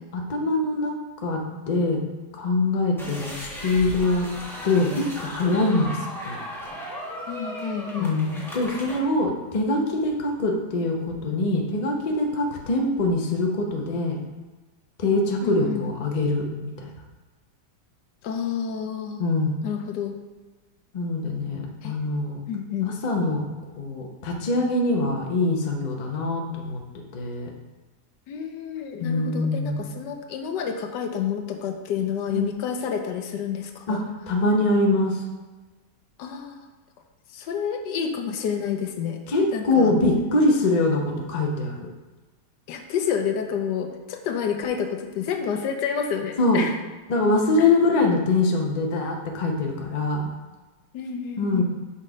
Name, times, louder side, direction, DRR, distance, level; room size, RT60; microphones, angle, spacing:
voice 1, 0.1-0.9 1.2-2.0 2.3-4.3 4.6-5.9 6.2-6.4 8.0-14.2 15.0-16.9 19.2-19.6 20.9-22.4 22.8-23.5 23.8-26.8 27.1-27.5 29.0-29.9 32.3-32.5 33.9-34.0 34.3-35.2 39.3-41.9 46.4-46.6 47.1-50.3 51.4-51.6, left 2 dB, 35° left, 1 dB, 0.6 m, -23 dB
sound 1, 3.0-9.0, equal, ahead, 1.0 m, -36 dB
voice 2, 7.3-8.1 15.4-15.9 18.2-19.2 19.6-20.1 21.8-22.0 22.5-23.0 28.3-34.0 36.2-36.6 37.3-39.2 39.5-39.9 42.7-46.8 47.6-47.7 50.9-51.6, left 7 dB, 80° left, 5 dB, 1.3 m, -29 dB
6.5 x 4.2 x 5.0 m, 1.2 s
omnidirectional pair, 1.9 m